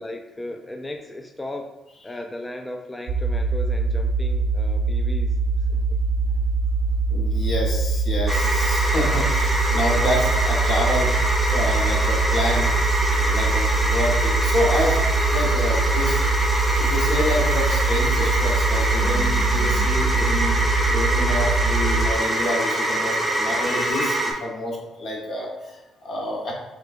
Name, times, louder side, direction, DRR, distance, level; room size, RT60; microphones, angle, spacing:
voice 1, 0.0-1.8 2.0-5.4 5.7-5.8, left 1 dB, 15° left, 3 dB, 0.3 m, -36 dB
sound 1, 3.1-22.1, right 3 dB, 70° right, 0.6 m, -23 dB
voice 2, 7.1-11.1 11.5-12.7 13.2-15.0 15.3-16.2 16.8-20.6 20.9-26.5, left 1 dB, 60° left, -2 dB, 1.2 m, -27 dB
sound 2, 8.3-24.3, right 1 dB, 5° right, 0.9 m, -24 dB
sound 3, 19.0-24.6, left 1 dB, 45° left, 0.7 m, -43 dB
6.4 x 2.3 x 2.6 m, 1.1 s
cardioid pair, 90°, 0 cm